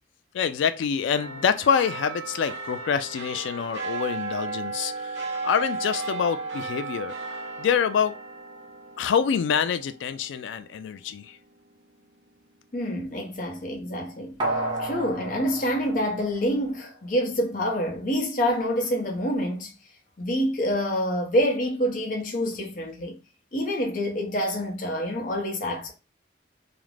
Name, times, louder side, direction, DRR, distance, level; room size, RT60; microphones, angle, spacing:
voice 1, 0.3-8.2 9.0-11.4, left 7 dB, 80° left, 0.3 m, -26 dB
sound 1, 1.1-11.9 12.3-12.4, right 3 dB, 70° right, 0.6 m, -35 dB
voice 2, 12.7-14.4 14.8-19.7 20.2-23.2 23.5-25.9, equal, 45° left, 0.6 m, -27 dB
sound 2, 14.4-17.0 17.3-17.4, right 1 dB, 25° right, 0.6 m, -32 dB
2.4 x 2.0 x 3.1 m
head